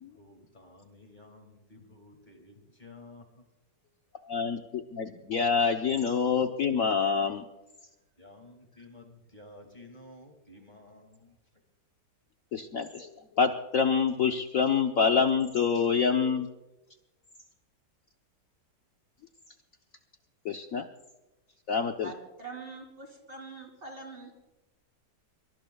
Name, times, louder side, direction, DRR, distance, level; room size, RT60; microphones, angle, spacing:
voice 1, 0.2-3.2 8.2-11.3, left 2 dB, 25° left, 2 dB, 2.3 m, -52 dB
voice 2, 4.3-7.4 12.5-13.1 13.4-16.5 20.4-20.9 21.7-22.1, left 6 dB, 60° left, 4 dB, 1.2 m, -26 dB
voice 3, 22.0-24.3, right 4 dB, 30° right, 1 dB, 3.4 m, -44 dB
23.5 x 21.5 x 2.3 m, 1.0 s
omnidirectional pair, 1.8 m